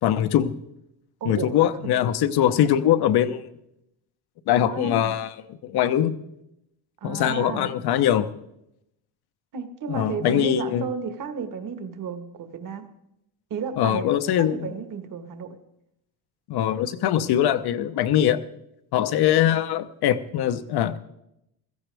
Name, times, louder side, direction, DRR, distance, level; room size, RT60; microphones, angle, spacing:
voice 1, 0.0-0.5 1.2-3.5 4.5-5.3 5.6-6.1 7.0-8.3 9.9-10.8 13.8-14.7 16.5-18.4 18.9-21.0, left 11 dB, 65° left, 12 dB, 0.9 m, -22 dB
voice 2, 1.2-1.7 4.6-5.2 7.0-7.7 9.5-12.8 13.5-14.1 14.4-15.5, right 5 dB, 50° right, 8 dB, 1.5 m, -32 dB
16.0 x 14.0 x 3.4 m, 0.82 s
cardioid pair, 115°, 41 cm